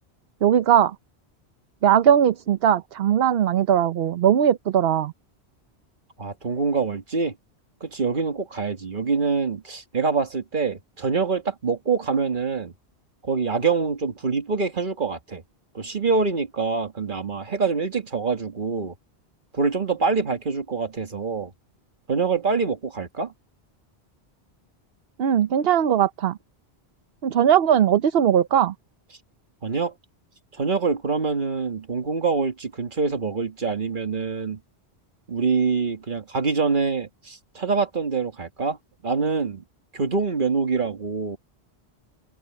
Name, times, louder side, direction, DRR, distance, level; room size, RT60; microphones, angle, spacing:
voice 1, 0.4-0.9 1.8-5.1 25.2-26.4 27.2-28.7, right 9 dB, 65° right, 0.9 m, -19 dB
voice 2, 6.2-7.4 7.8-12.7 13.2-15.4 15.7-18.9 19.5-21.5 22.1-23.3 29.6-29.9 30.5-34.6 35.3-38.8 39.0-39.6 39.9-41.4, right 4 dB, 50° right, 1.9 m, -25 dB
omnidirectional pair, 1.1 m